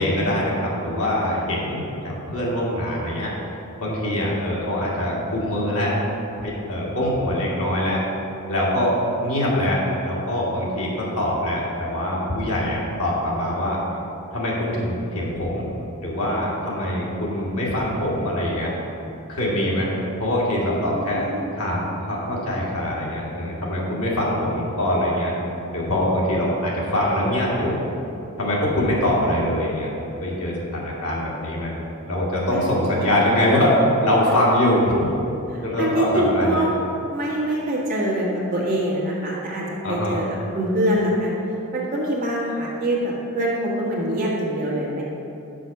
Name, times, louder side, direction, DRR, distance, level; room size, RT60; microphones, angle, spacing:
voice 1, 0.0-3.3 3.8-5.9 6.4-8.0 8.5-9.0 9.2-13.8 14.3-15.7 16.0-18.7 19.3-19.9 20.2-21.3 21.5-21.8 22.1-25.4 25.7-27.8 28.4-29.9 30.2-31.7 32.1-35.1 35.6-36.6 39.8-40.2, left 1 dB, 80° left, -5 dB, 1.9 m, -23 dB
voice 2, 20.8-21.5 32.5-32.6 33.0-33.4 35.5-36.7 37.1-40.2 40.5-41.4 41.7-45.0, right 1 dB, 40° right, -4 dB, 1.5 m, -24 dB
6.2 x 5.8 x 5.8 m, 2.9 s
head